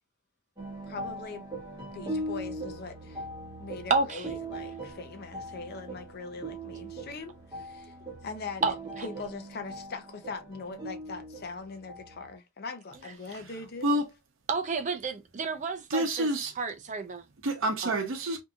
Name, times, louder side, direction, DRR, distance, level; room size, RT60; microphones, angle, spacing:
sound 1, 0.6-12.3, right 1 dB, 20° right, 1.1 m, -40 dB
voice 1, 0.9-1.4 1.9-3.2 3.6-7.9 8.2-8.7 9.0-14.0, left 4 dB, 45° left, 0.5 m, -41 dB
voice 2, 3.9-4.3 8.6-9.1 14.5-16.3 16.6-17.2 17.8-18.0, right 4 dB, 35° right, 0.4 m, -30 dB
voice 3, 15.9-16.5 17.4-18.4, right 1 dB, 65° right, 0.7 m, -28 dB
2.7 x 2.6 x 2.3 m
head